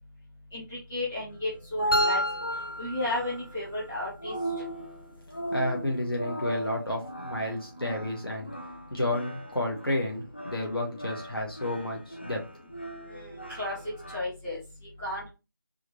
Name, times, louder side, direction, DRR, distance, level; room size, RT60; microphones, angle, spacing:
voice 1, 0.5-2.2 2.8-4.3 13.0-13.7 14.1-14.6 15.0-15.3, left 2 dB, 5° left, -11 dB, 1.2 m, -33 dB
sound 1, 1.3-14.2, equal, 30° left, 0.4 m, -36 dB
sound 2, 1.9-3.9, equal, 70° left, 1.5 m, -32 dB
voice 2, 5.5-8.5 8.9-12.4, left 1 dB, 90° left, -1 dB, 1.9 m, -31 dB
4.8 x 3.2 x 3.2 m, 0.29 s
figure-of-eight pair, 170°, 12 cm